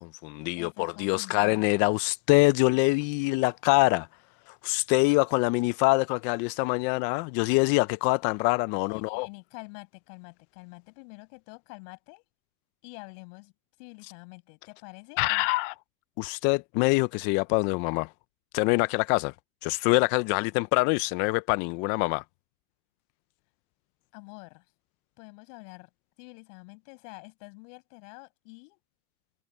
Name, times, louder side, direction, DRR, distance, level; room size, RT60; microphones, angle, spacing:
voice 1, 0.0-4.1 4.5-9.3 15.2-15.7 16.2-18.1 18.5-19.3 19.6-22.2, left 25 dB, 30° left, 0.3 m, -25 dB
voice 2, 0.6-1.6 8.9-12.2 12.8-13.5 13.8-15.3 24.1-24.6 25.2-25.9 26.2-28.8, left 35 dB, 55° left, 7.7 m, -47 dB
hypercardioid pair, 115°, 44 cm